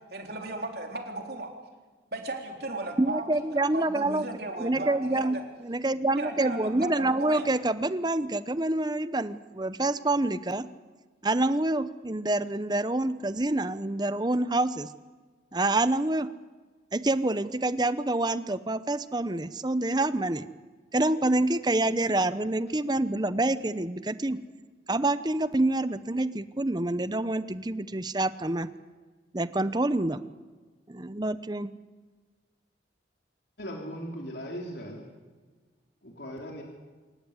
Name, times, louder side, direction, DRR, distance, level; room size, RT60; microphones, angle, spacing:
voice 1, 0.1-1.5 2.1-5.3 6.2-7.5, right 2 dB, 55° right, 2 dB, 3.9 m, -35 dB
voice 2, 3.0-4.3 4.6-10.7 11.2-14.9 15.5-16.3 16.9-20.4 20.9-24.4 24.9-28.7 29.3-30.2 30.9-31.7, right 2 dB, 20° right, 13 dB, 0.8 m, -27 dB
voice 3, 33.6-35.1 36.0-36.6, equal, 65° left, 0 dB, 3.3 m, -38 dB
27.0 x 14.5 x 9.8 m, 1.4 s
head